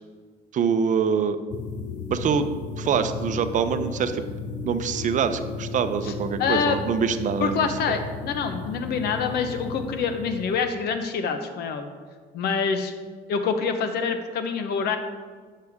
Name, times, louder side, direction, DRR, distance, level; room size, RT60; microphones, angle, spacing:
voice 1, 0.5-1.4 2.1-2.5 2.8-4.2 4.6-7.6 7.9-8.0, right 6 dB, 50° right, 10 dB, 0.6 m, -24 dB
sound 1, 1.5-10.7, left 4 dB, 50° left, 0.6 m, -35 dB
voice 2, 6.4-6.8 7.4-11.9 12.3-12.9 13.3-15.0, left 5 dB, 70° left, 8 dB, 0.9 m, -26 dB
9.4 x 6.6 x 3.5 m, 1.5 s
cardioid pair, 110°, 17 cm